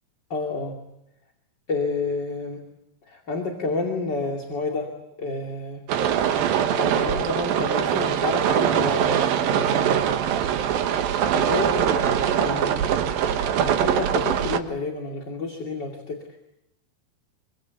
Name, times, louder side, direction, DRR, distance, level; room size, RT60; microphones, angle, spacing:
voice 1, 0.3-0.8 1.7-2.6 3.1-4.9 5.2-5.8 6.7-10.1 11.3-12.8 13.6-16.2, left 3 dB, 30° left, 1 dB, 2.7 m, -29 dB
sound 1, 5.9-14.6, right 9 dB, 70° right, 3.0 m, -22 dB
26.0 x 24.5 x 8.4 m, 0.83 s
omnidirectional pair, 4.5 m